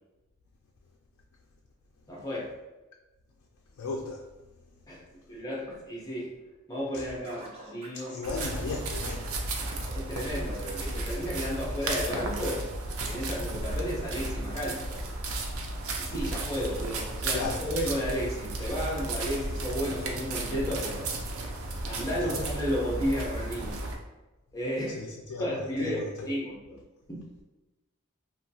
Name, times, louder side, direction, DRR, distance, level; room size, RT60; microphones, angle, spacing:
voice 1, 2.1-2.5 4.9-6.3 6.7-8.3 9.9-12.7 13.1-15.0 16.0-21.1 21.8-23.8 24.5-25.0 25.4-26.8 27.1-27.2, equal, 15° left, -5 dB, 0.7 m, -33 dB
voice 2, 3.8-4.3 6.9-7.1 7.9-9.7 17.3-17.6 22.2-22.4 24.9-26.3, left 3 dB, 85° left, 1 dB, 0.3 m, -36 dB
Scratching (performance technique), 7.2-10.0, right 2 dB, 30° right, 0.4 m, -47 dB
sound 1, 8.2-24.0, right 2 dB, 85° right, 0.4 m, -34 dB
2.7 x 2.2 x 2.7 m, 1.1 s
head